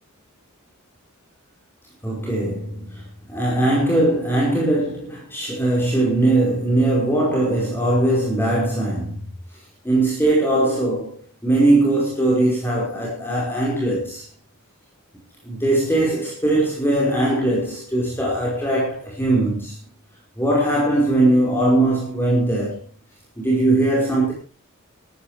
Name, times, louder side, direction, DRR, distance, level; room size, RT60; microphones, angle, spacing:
voice 1, 2.0-9.3 9.8-11.1 11.4-14.2 15.4-19.8 20.4-22.8 23.4-24.3, right 1 dB, 10° left, 5.1 m, -20 dB
13.5 x 13.5 x 5.0 m
head